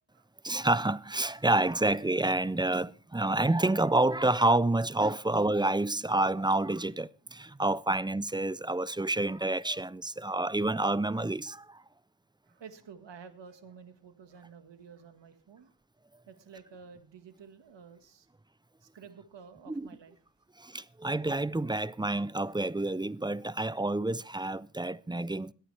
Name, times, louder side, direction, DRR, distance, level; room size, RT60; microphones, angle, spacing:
voice 1, 0.4-11.8 19.7-19.9 20.6-25.5, right 2 dB, 10° right, 0.5 m, -28 dB
voice 2, 12.4-15.8 16.3-18.3 18.8-20.2, right 6 dB, 65° right, 1.7 m, -51 dB
22.5 x 9.0 x 3.3 m
cardioid pair, 50°, 45 cm